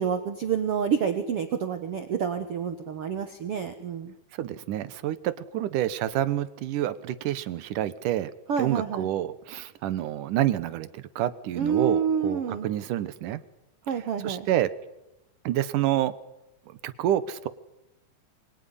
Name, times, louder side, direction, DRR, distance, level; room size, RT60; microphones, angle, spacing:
voice 1, 0.0-4.1 8.5-9.1 11.6-12.7 13.9-14.5, right 7 dB, 55° right, 7 dB, 1.9 m, -28 dB
voice 2, 4.4-8.3 8.6-13.4 14.2-14.7 15.4-16.1 16.7-17.5, right 12 dB, 70° right, 14 dB, 2.6 m, -28 dB
25.0 x 23.0 x 9.9 m, 0.90 s
omnidirectional pair, 4.0 m